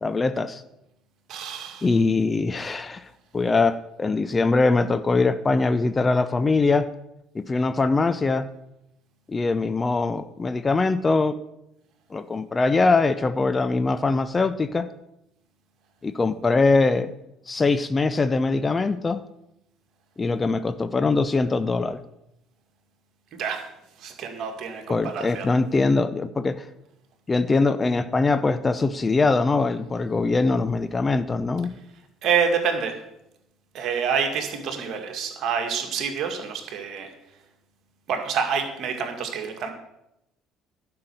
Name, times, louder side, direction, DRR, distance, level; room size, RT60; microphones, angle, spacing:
voice 1, 0.0-0.6 1.8-3.1 3.3-6.9 7.3-8.5 9.3-11.4 12.1-14.9 16.0-17.1 17.5-19.2 20.2-22.0 24.9-26.6 27.3-31.7, left 3 dB, 25° left, 11 dB, 0.7 m, -22 dB
voice 2, 1.3-1.9 23.3-23.6 24.0-25.5 32.2-33.0 33.7-37.1 38.1-39.7, right 6 dB, 55° right, 4 dB, 2.1 m, -27 dB
11.5 x 5.8 x 8.1 m, 0.85 s
hypercardioid pair, 60°, 0 cm